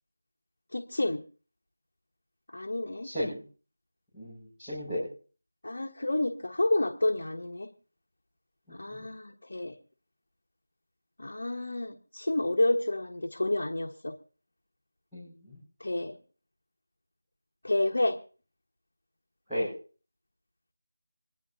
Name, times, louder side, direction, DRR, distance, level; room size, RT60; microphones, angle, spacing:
voice 1, 0.7-1.2 2.5-3.1 5.6-7.7 8.7-9.8 11.2-14.1 15.8-16.2 17.6-18.2, left 1 dB, 70° left, 2 dB, 1.3 m, -29 dB
voice 2, 3.0-3.4 4.1-5.1 8.7-9.0 15.1-15.6 19.5-19.7, equal, ahead, -22 dB, 5.5 m, -35 dB
26.5 x 11.0 x 2.8 m, 0.39 s
figure-of-eight pair, 175°, 0 cm